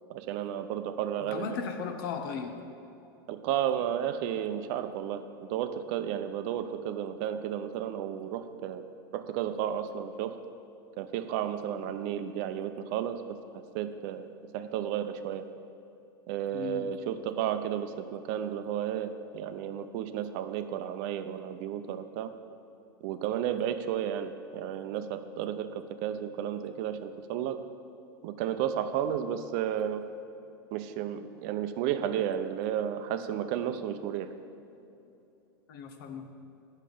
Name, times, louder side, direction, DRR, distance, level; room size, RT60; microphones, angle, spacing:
voice 1, 0.1-1.5 3.3-8.8 9.1-10.4 11.0-13.4 13.7-14.3 14.5-15.5 16.3-22.3 23.0-27.6 28.2-30.0 30.7-34.3, right 10 dB, 55° right, 10 dB, 0.6 m, -33 dB
voice 2, 1.2-2.6 16.5-16.9 35.7-36.3, left 6 dB, 65° left, 6 dB, 0.9 m, -36 dB
8.5 x 6.5 x 5.0 m, 2.8 s
hypercardioid pair, 105°, 12 cm